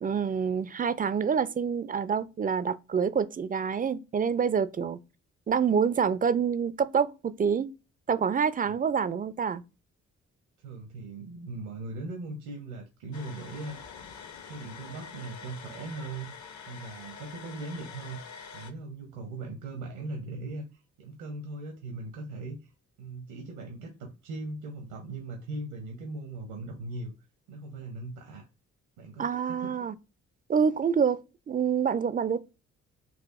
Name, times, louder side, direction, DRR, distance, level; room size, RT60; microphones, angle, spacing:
voice 1, 0.0-5.0 5.5-7.1 7.4-7.7 8.1-9.6 29.2-29.9 30.5-31.2 31.5-32.4, right 6 dB, 25° right, 0.4 m, -26 dB
voice 2, 10.6-13.8 14.4-16.3 16.7-22.7 23.0-27.1 27.5-28.5 29.0-29.8, right 2 dB, 75° right, 0.8 m, -39 dB
sound 1, 13.1-18.7, left 6 dB, 50° left, 0.8 m, -46 dB
4.1 x 2.5 x 2.4 m
hypercardioid pair, 40°, 38 cm